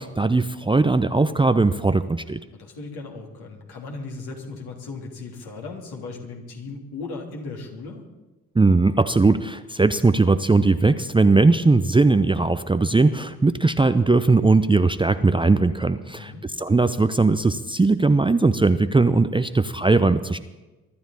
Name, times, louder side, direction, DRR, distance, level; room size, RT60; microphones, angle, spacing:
voice 1, 0.0-2.4 8.5-16.3 16.6-20.4, right 3 dB, 10° right, 11 dB, 0.7 m, -19 dB
voice 2, 2.5-8.0 9.9-10.1 16.1-16.4, left 3 dB, 60° left, 0 dB, 3.2 m, -37 dB
23.5 x 12.5 x 4.3 m, 1.1 s
figure-of-eight pair, 40°, 43 cm